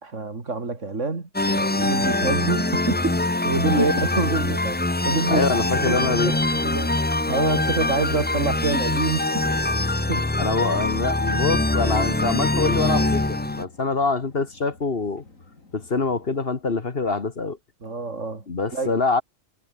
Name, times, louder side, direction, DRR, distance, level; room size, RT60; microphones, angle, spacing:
voice 1, 0.0-5.4 5.8-9.5 10.1-10.3 17.8-18.4 18.7-19.0, right 3 dB, 65° right, 3.2 m, -27 dB
sound 1, 1.3-13.6, left 2 dB, 15° left, 0.4 m, -23 dB
voice 2, 5.3-6.4 10.4-15.2 15.7-17.6 18.5-19.2, left 4 dB, 45° left, 1.8 m, -25 dB
sound 2, 6.3-16.4, left 3 dB, 80° left, 4.6 m, -50 dB
omnidirectional pair, 1.4 m